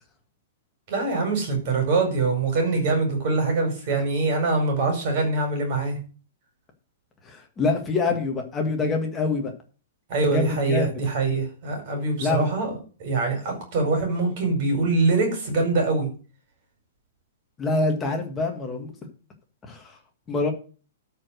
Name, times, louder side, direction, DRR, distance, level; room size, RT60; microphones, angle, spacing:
voice 1, 0.9-6.0 10.1-12.7 13.0-16.1, right 3 dB, 30° right, 5.1 m, -24 dB
voice 2, 7.2-9.5 10.3-10.9 12.2-12.5 17.6-18.9 19.7-20.0 20.3-20.5, left 3 dB, 10° left, 1.6 m, -25 dB
13.0 x 5.1 x 6.4 m
hypercardioid pair, 180°, 0 cm